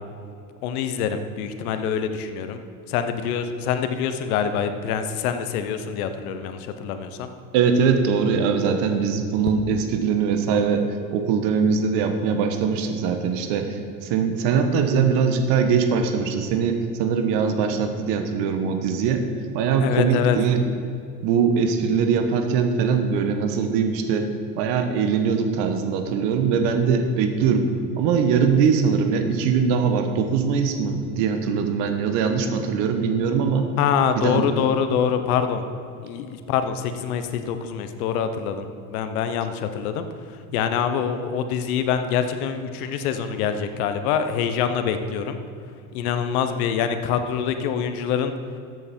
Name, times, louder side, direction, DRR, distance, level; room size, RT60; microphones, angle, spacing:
voice 1, 0.6-2.6 2.9-7.3 19.8-20.4 33.8-35.6 36.0-45.4 45.9-48.3, left 7 dB, 80° left, 9 dB, 1.1 m, -25 dB
voice 2, 7.5-19.2 19.5-20.6 21.2-24.3 24.6-27.7 28.0-33.7 34.2-34.5, right 6 dB, 70° right, 6 dB, 1.5 m, -22 dB
14.0 x 8.3 x 4.5 m, 2.5 s
hypercardioid pair, 80°, 43 cm